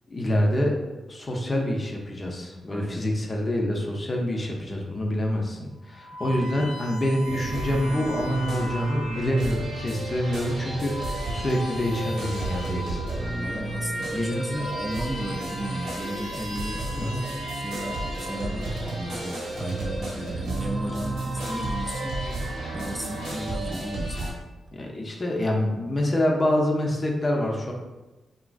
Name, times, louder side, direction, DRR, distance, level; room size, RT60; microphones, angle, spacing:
voice 1, 0.1-0.8 1.1-13.0 14.1-14.8 17.0-17.2 24.7-27.7, left 1 dB, 40° left, 0 dB, 0.6 m, -26 dB
voice 2, 2.7-3.1 6.2-6.7 13.2-22.2 22.7-24.4, right 1 dB, 15° right, 3 dB, 0.4 m, -35 dB
sound 1, 5.8-9.2 9.9-10.1 10.7-13.1 13.6-13.7 14.2-18.7 19.7-20.1 21.0-22.3, left 1 dB, 80° left, 0.6 m, -39 dB
sound 2, 7.2-24.3, right 1 dB, 80° right, 0.8 m, -32 dB
2.9 x 2.5 x 2.4 m, 1.1 s
supercardioid pair, 40°, 0 cm